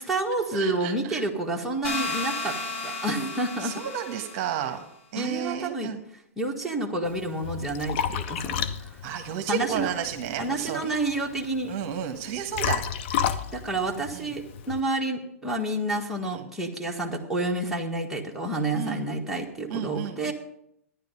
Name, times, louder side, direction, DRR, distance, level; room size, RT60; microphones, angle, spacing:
voice 1, 0.0-2.5 2.8-3.7 5.2-5.9 6.4-9.0 9.5-9.9 10.4-11.7 13.5-20.3, right 2 dB, 5° right, -2 dB, 1.6 m, -29 dB
voice 2, 0.5-1.2 3.6-4.8 5.1-6.0 9.0-11.0 11.7-12.8 13.1-13.2 14.1-14.3 16.2-16.5 18.7-19.1 19.7-20.3, right 9 dB, 40° right, 5 dB, 1.3 m, -32 dB
sound 1, 1.8-4.7, left 3 dB, 60° left, 4.9 m, -33 dB
Liquid, 7.1-14.8, left 8 dB, 45° left, 0.8 m, -32 dB
12.5 x 10.0 x 5.4 m, 0.76 s
figure-of-eight pair, 105°, 8 cm